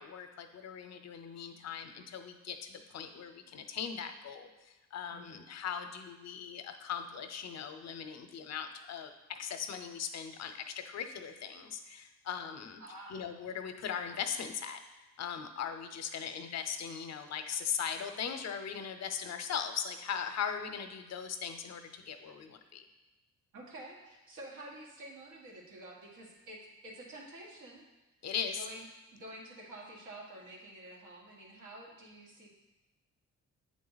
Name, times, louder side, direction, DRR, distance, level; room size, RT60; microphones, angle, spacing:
voice 1, 0.0-4.5 4.9-12.8 13.1-14.8 15.2-22.9 28.2-28.6, left 7 dB, 60° left, 8 dB, 0.6 m, -39 dB
voice 2, 5.1-5.4 12.8-13.3 23.5-27.8 28.6-28.9 29.1-32.5, right 1 dB, 80° right, -2 dB, 1.7 m, -49 dB
8.1 x 3.7 x 4.0 m, 1.1 s
cardioid pair, 100°, 30 cm